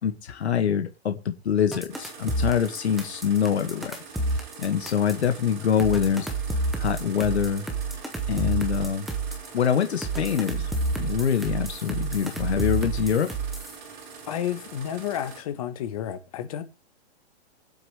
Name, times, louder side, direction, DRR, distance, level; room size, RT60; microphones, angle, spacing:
voice 1, 0.0-4.0 4.6-6.3 6.8-7.7 8.3-9.1 9.5-10.7 11.0-13.3, left 8 dB, 75° left, 2.1 m, -25 dB
sound 1, 1.7-5.2 5.8-9.5 10.0-13.8, right 3 dB, ahead, 0.6 m, -29 dB
sound 2, 1.9-15.4, right 5 dB, 45° right, 5.3 m, -44 dB
voice 2, 14.3-16.6, left 10 dB, 30° left, 1.3 m, -31 dB
23.5 x 7.9 x 3.4 m
hypercardioid pair, 170°, 33 cm